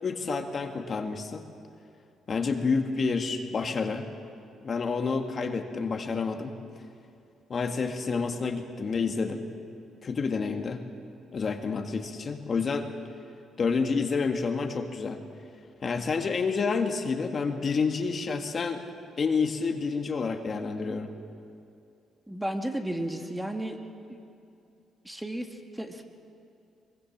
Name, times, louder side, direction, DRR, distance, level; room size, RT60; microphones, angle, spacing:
voice 1, 0.0-1.4 2.3-4.1 4.6-6.5 7.5-9.5 10.0-10.8 11.3-12.9 13.6-15.2 15.8-18.8 19.2-21.1, left 4 dB, 45° left, 5 dB, 1.9 m, -29 dB
voice 2, 22.3-23.8 24.1-24.2 25.0-26.0, right 1 dB, 10° right, 4 dB, 1.9 m, -33 dB
23.0 x 22.5 x 7.4 m, 2.6 s
cardioid pair, 90°, 0 cm